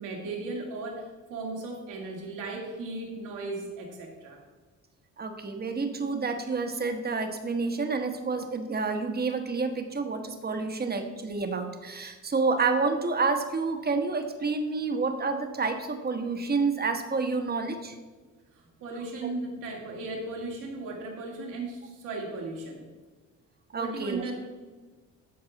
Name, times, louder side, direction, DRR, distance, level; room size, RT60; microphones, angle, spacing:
voice 1, 0.0-4.4 18.8-22.9 23.7-24.3, right 3 dB, 85° right, -1 dB, 2.1 m, -36 dB
voice 2, 5.2-18.0 19.2-19.3 23.7-24.3, right 4 dB, 30° right, 6 dB, 1.1 m, -29 dB
13.0 x 4.7 x 4.0 m, 1.3 s
cardioid pair, 90°, 30 cm